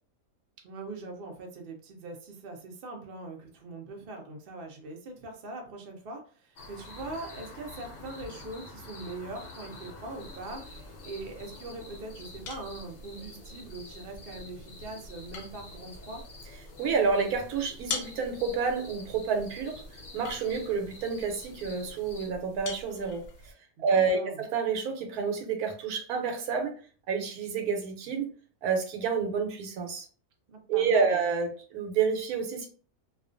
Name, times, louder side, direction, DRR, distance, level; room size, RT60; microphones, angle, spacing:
voice 1, 0.6-16.2 23.8-24.5 30.5-31.3, right 2 dB, 55° right, 2 dB, 0.6 m, -42 dB
sound 1, 6.6-22.3, left 2 dB, 55° left, 0.6 m, -48 dB
sound 2, 10.1-23.5, left 4 dB, 90° left, 1.1 m, -45 dB
voice 2, 16.8-19.7 20.1-23.5 23.8-26.7 27.1-28.3 28.6-30.1 30.7-32.7, right 5 dB, 85° right, 4 dB, 1.1 m, -29 dB
2.4 x 2.3 x 2.5 m, 0.41 s
omnidirectional pair, 1.5 m